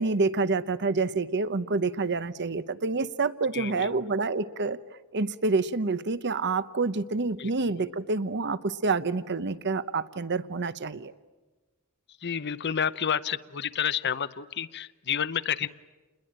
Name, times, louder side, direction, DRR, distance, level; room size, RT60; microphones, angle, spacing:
voice 1, 0.0-4.8 5.1-11.1, right 3 dB, 55° right, 14 dB, 0.9 m, -28 dB
voice 2, 3.5-3.9 7.4-7.5 7.8-7.9 12.2-15.7, left 8 dB, 50° left, 15 dB, 0.8 m, -30 dB
29.5 x 21.5 x 8.9 m, 1.3 s
head